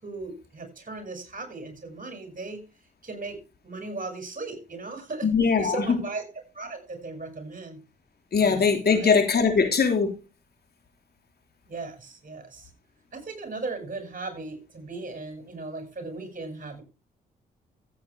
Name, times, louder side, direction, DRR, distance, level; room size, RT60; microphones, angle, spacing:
voice 1, 0.0-2.6 3.0-3.4 3.6-5.3 5.6-6.2 6.5-7.8 8.4-9.1 11.7-12.7 13.1-16.8, right 3 dB, 40° right, 6.2 m, -37 dB
voice 2, 5.2-6.0 8.3-10.1, left 5 dB, 50° left, 3.5 m, -21 dB
15.0 x 8.6 x 3.4 m
hypercardioid pair, 45°, 21 cm